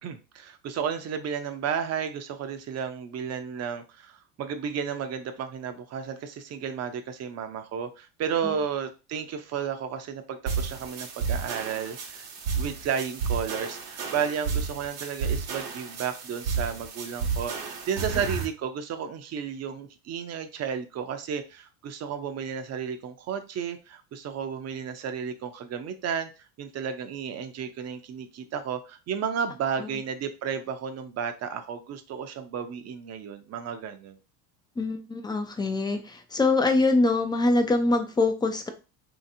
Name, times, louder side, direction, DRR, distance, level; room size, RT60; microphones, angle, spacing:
voice 1, 0.0-12.2 12.6-26.3 26.6-34.2, right 7 dB, 35° right, 8 dB, 0.6 m, -33 dB
sound 1, 10.5-18.5, right 5 dB, 80° right, 1.0 m, -32 dB
voice 2, 34.8-38.7, left 2 dB, 10° left, 6 dB, 0.3 m, -24 dB
3.1 x 2.8 x 2.7 m, 0.30 s
supercardioid pair, 95°, 45 cm